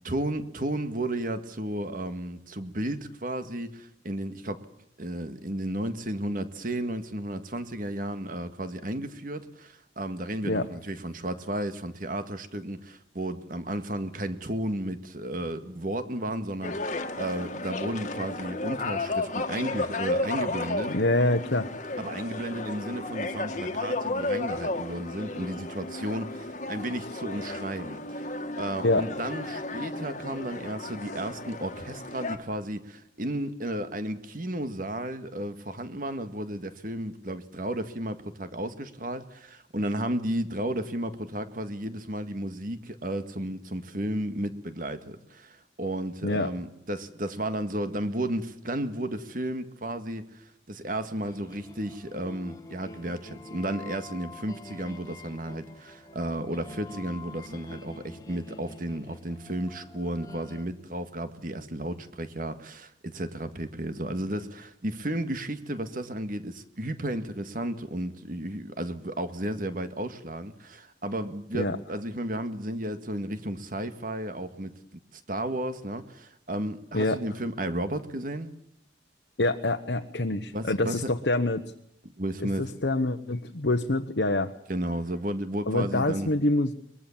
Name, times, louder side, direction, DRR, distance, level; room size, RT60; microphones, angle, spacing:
voice 1, 0.0-4.7 5.0-20.9 22.0-28.0 28.6-78.5 80.5-81.1 82.2-82.7 84.7-86.3, right 1 dB, 45° right, 9 dB, 1.9 m, -33 dB
sound 1, 16.6-32.4, left 2 dB, 40° left, 1.7 m, -33 dB
voice 2, 20.9-21.7 26.0-26.1 28.8-29.1 46.2-46.5 71.5-71.8 76.9-77.2 79.4-81.7 82.4-84.5 85.7-86.7, left 2 dB, 65° left, 5 dB, 1.1 m, -26 dB
sound 2, 51.2-60.7, left 2 dB, 20° left, 1.7 m, -46 dB
23.5 x 21.5 x 7.3 m, 0.79 s
head